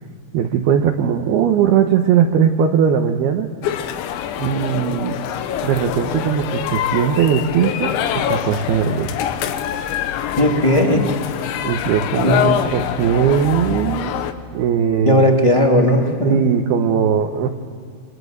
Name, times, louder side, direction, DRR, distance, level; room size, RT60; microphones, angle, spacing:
voice 1, 0.3-3.5 4.4-5.2 5.6-9.2 11.6-14.1 14.5-15.2 16.2-17.5, right 8 dB, 70° right, 3 dB, 2.9 m, -19 dB
sound 1, 3.6-14.3, left 9 dB, 90° left, 3.6 m, -24 dB
voice 2, 10.4-11.1 12.2-12.7 15.1-16.4, left 1 dB, 10° left, 0 dB, 1.9 m, -16 dB
28.5 x 25.0 x 8.1 m, 2.2 s
omnidirectional pair, 5.1 m